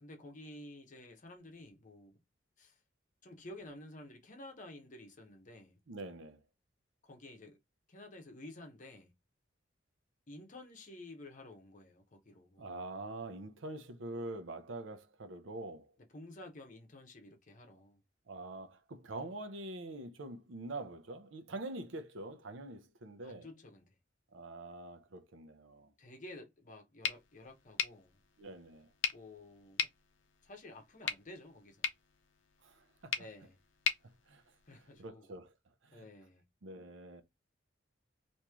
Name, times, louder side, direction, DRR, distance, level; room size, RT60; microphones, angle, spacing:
voice 1, 0.0-2.2 2.6-2.8 3.2-5.8 7.0-7.6 7.9-9.1 10.3-12.7 16.1-18.0 23.2-23.9 26.0-28.2 29.1-29.9 30.4-31.9 33.2-33.5 34.7-35.3 35.9-36.4, left 1 dB, 40° left, 0.8 m, -52 dB
voice 2, 5.9-6.4 12.6-15.9 18.3-23.5 24.3-25.9 28.4-28.9 32.6-33.3 34.3-35.5 35.8-36.1 36.6-37.2, right 2 dB, 85° right, 0.6 m, -45 dB
sound 1, 27.0-35.1, left 7 dB, 80° left, 0.5 m, -41 dB
3.0 x 2.6 x 3.5 m
head